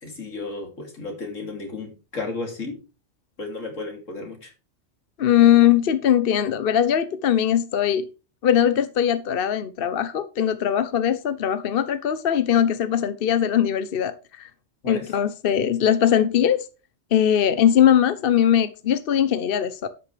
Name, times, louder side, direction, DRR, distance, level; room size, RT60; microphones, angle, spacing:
voice 1, 0.0-2.8 3.4-4.5 14.8-15.1, left 3 dB, 80° left, 3.2 m, -33 dB
voice 2, 5.2-8.1 8.4-14.5 14.9-16.7 17.1-19.9, left 9 dB, 55° left, 0.9 m, -20 dB
11.5 x 8.4 x 3.3 m
omnidirectional pair, 1.3 m